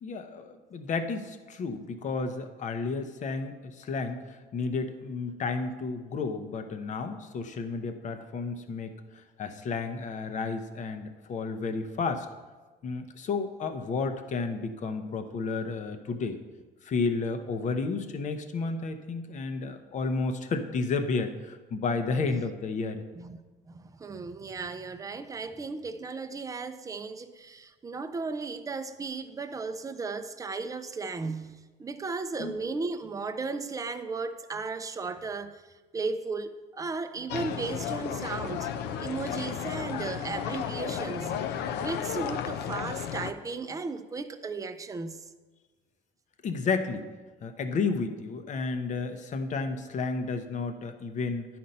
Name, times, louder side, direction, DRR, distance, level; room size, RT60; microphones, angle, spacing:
voice 1, 0.0-8.9 9.4-12.3 12.8-16.4 16.8-23.0 32.4-32.6 46.4-47.1 47.4-51.5, left 4 dB, 45° left, 0.8 m, -32 dB
voice 2, 23.7-35.6 35.9-38.7 39.0-41.4 41.8-45.2, right 4 dB, 20° right, 0.5 m, -35 dB
sound 1, 37.3-43.3, left 8 dB, 80° left, 0.5 m, -33 dB
10.0 x 4.3 x 5.3 m
cardioid pair, 110°, 17 cm